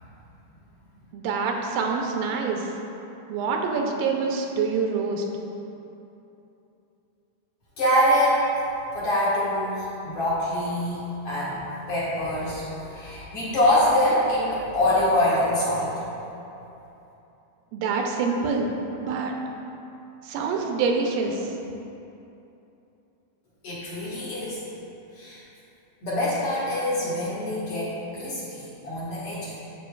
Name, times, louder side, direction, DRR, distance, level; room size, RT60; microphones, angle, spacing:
voice 1, 1.1-2.7 3.3-5.3 17.7-18.7 19.0-19.4 20.2-21.5, right 4 dB, 85° right, 2 dB, 2.3 m, -26 dB
voice 2, 7.8-8.4 8.9-15.9 23.6-24.6 25.1-25.4 26.0-29.6, left 1 dB, 50° left, -8 dB, 2.1 m, -25 dB
12.0 x 5.6 x 2.4 m, 2.9 s
omnidirectional pair, 3.9 m